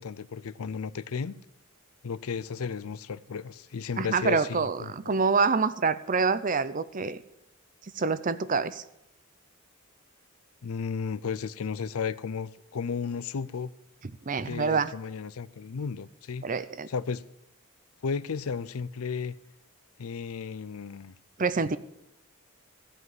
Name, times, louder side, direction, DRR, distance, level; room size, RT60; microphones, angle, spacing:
voice 1, 0.0-1.4 2.0-5.2 10.6-13.7 14.4-16.5 16.9-17.2 18.0-19.3 20.0-21.1, left 5 dB, 75° left, 0.5 m, -34 dB
voice 2, 4.0-7.2 8.0-8.8 14.3-14.9 16.4-16.9 21.4-21.8, right 4 dB, 35° right, 0.6 m, -26 dB
15.0 x 5.2 x 9.5 m
head